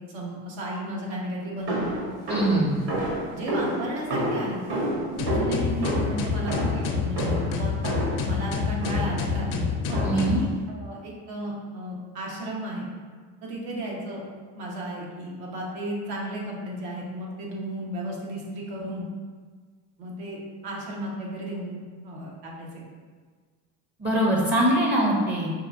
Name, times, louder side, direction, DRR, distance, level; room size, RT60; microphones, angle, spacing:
voice 1, 0.1-2.0 3.0-7.7 8.2-12.9 13.4-14.2 14.5-19.1 20.0-22.8, right 1 dB, 75° right, -3 dB, 1.2 m, -34 dB
sound 1, 1.7-8.3 8.8-9.3 9.9-10.4, right 1 dB, 55° right, 1.3 m, -29 dB
voice 2, 2.3-2.8 10.0-10.4 24.0-25.5, right 1 dB, 25° right, -2 dB, 0.7 m, -22 dB
sound 2, 5.2-10.5, left 6 dB, 45° left, 0.6 m, -27 dB
4.8 x 2.5 x 2.5 m, 1.5 s
supercardioid pair, 85°, 46 cm